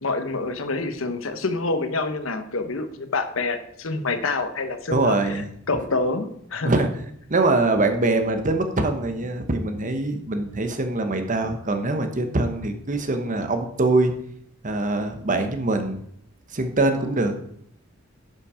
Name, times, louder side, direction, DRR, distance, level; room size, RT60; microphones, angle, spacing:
voice 1, 0.0-5.4 5.7-6.7, left 3 dB, 75° left, 9 dB, 1.0 m, -27 dB
voice 2, 4.9-5.5 6.6-6.9 7.3-14.1 14.6-16.0 16.5-17.3, right 2 dB, 40° right, 7 dB, 1.1 m, -23 dB
10.5 x 5.8 x 4.9 m, 0.69 s
head